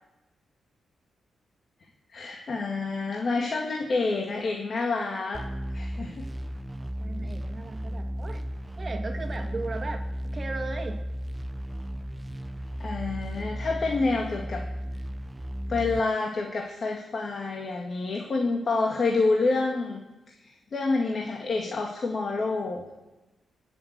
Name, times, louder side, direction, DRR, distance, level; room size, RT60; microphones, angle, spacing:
voice 1, 2.1-5.4 5.7-6.2 12.8-14.6 15.7-20.0 20.7-22.8, left 3 dB, 50° left, 0 dB, 2.0 m, -28 dB
sound 1, 5.3-16.0, equal, 15° right, 1.0 m, -34 dB
voice 2, 7.0-8.5 8.8-11.0, right 3 dB, 35° right, 4 dB, 2.1 m, -37 dB
20.0 x 7.3 x 8.2 m, 1.1 s
cardioid pair, 90°, 0 cm